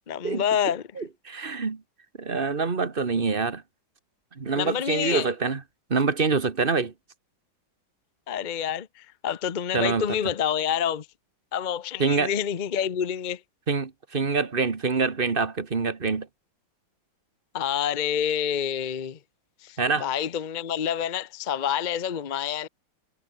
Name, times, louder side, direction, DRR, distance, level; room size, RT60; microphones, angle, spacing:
voice 1, 0.1-0.8 4.5-5.3 8.3-11.1 11.5-13.4 17.5-19.2 19.6-22.7, left 9 dB, 60° left, 0.5 m, -28 dB
voice 2, 1.0-1.8 2.2-3.6 4.4-5.6 5.9-6.9 9.7-10.2 12.0-12.3 13.7-16.3 19.8-20.1, right 4 dB, 30° right, 1.6 m, -25 dB
omnidirectional pair, 2.2 m